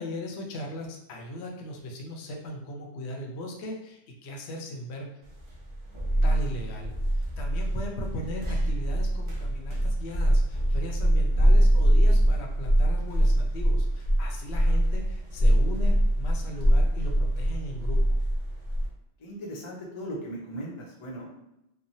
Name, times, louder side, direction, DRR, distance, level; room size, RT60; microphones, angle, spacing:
voice 1, 0.0-5.2 6.2-18.2, left 1 dB, 70° left, 2 dB, 0.8 m, -38 dB
sound 1, 5.4-18.9, right 1 dB, 45° right, 0.4 m, -23 dB
voice 2, 5.9-6.2 14.5-14.8 19.2-21.4, equal, 40° left, -3 dB, 0.4 m, -39 dB
3.0 x 2.1 x 2.6 m, 0.88 s
omnidirectional pair, 1.2 m